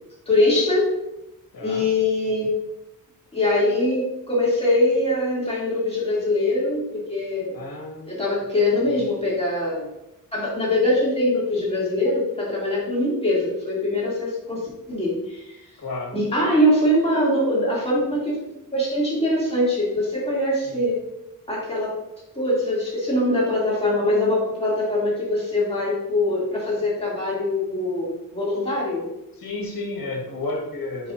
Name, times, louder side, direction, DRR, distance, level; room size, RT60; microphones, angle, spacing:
voice 1, 0.3-0.9 1.6-2.5 3.3-7.5 8.1-9.8 10.3-14.6 14.9-15.6 16.1-18.4 18.7-21.0 21.5-21.9 22.3-28.1 28.3-29.0, left 1 dB, 15° left, -7 dB, 2.5 m, -22 dB
voice 2, 1.5-1.9 7.5-8.2 8.8-9.0 15.8-16.1 29.3-31.1, left 2 dB, 80° left, 0 dB, 1.6 m, -32 dB
9.8 x 5.1 x 2.6 m, 0.89 s
wide cardioid pair, 130°, 34 cm